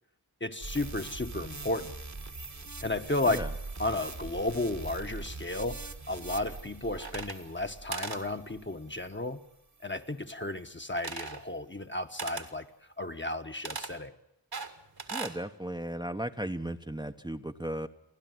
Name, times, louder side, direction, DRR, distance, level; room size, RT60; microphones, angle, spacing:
voice 1, 0.4-1.9 2.8-3.4 3.8-9.5 9.8-12.7 13.0-14.1, left 2 dB, 30° left, 7 dB, 1.3 m, -33 dB
sound 1, 0.6-9.3 9.8-9.9, right 3 dB, 45° right, 1.5 m, -42 dB
sound 2, 7.0-7.7 7.9-8.2 11.0-11.4 12.2-12.5 13.6-13.9 14.5-15.4, right 4 dB, 65° right, 2.0 m, -38 dB
voice 2, 15.1-17.9, right 1 dB, 10° right, 6 dB, 0.9 m, -36 dB
30.0 x 12.0 x 9.3 m, 0.87 s
wide cardioid pair, 70°, 40 cm